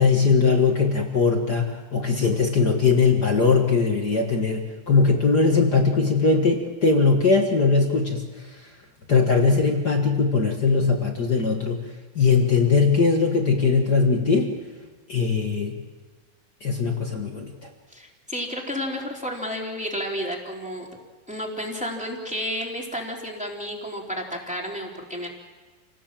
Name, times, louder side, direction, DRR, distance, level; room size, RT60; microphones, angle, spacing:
voice 1, 0.0-8.2 9.1-11.8 12.1-14.5 15.1-15.8 16.6-17.5, left 4 dB, 50° left, 2 dB, 1.1 m, -20 dB
voice 2, 17.9-20.9 21.3-25.3, equal, ahead, -1 dB, 2.8 m, -31 dB
29.0 x 18.5 x 7.5 m, 1.3 s
omnidirectional pair, 4.4 m